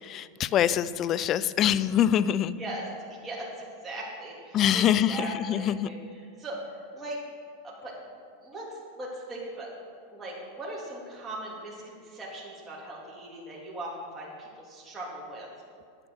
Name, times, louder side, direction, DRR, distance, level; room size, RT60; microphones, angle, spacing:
voice 1, 0.0-2.5 4.5-5.9, left 10 dB, 40° left, 16 dB, 0.5 m, -24 dB
voice 2, 3.2-6.6 6.9-7.2 7.6-8.0 8.4-9.7 10.1-15.5, right 1 dB, 15° right, -6 dB, 3.1 m, -39 dB
9.9 x 9.8 x 6.4 m, 2.3 s
hypercardioid pair, 115°, 0 cm